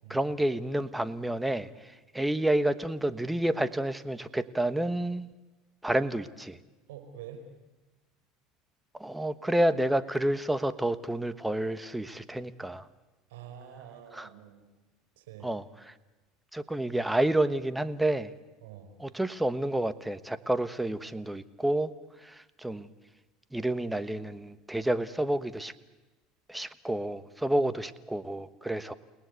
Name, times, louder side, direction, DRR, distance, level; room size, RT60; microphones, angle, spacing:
voice 1, 0.1-5.3 5.8-6.6 8.9-12.9 14.1-14.3 15.4-15.9 16.5-18.3 19.0-21.9 22.2-22.9 23.5-25.7 26.5-28.9, right 1 dB, 5° right, 13 dB, 1.2 m, -29 dB
voice 2, 6.9-7.4 13.3-14.7 15.2-15.5 16.8-17.0 18.6-18.9 27.6-27.7, right 9 dB, 90° right, 6 dB, 5.0 m, -47 dB
30.0 x 19.0 x 8.3 m, 1.1 s
supercardioid pair, 110°, 0 cm